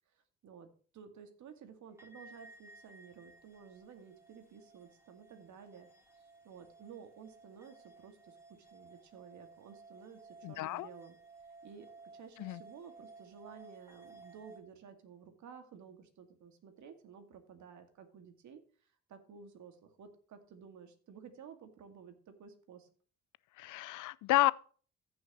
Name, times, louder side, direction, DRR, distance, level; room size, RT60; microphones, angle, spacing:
voice 1, 0.1-0.7 0.9-5.9 6.1-8.4 8.7-11.2 11.6-11.9 12.1-18.6 19.1-22.9, right 6 dB, 70° right, 2.3 m, -53 dB
sound 1, 2.0-14.6, right 3 dB, 10° right, 3.8 m, -57 dB
voice 2, 10.4-10.9 12.4-12.6 23.6-24.5, left 17 dB, 85° left, 0.5 m, -30 dB
15.0 x 6.4 x 3.1 m
cardioid pair, 90°, 30 cm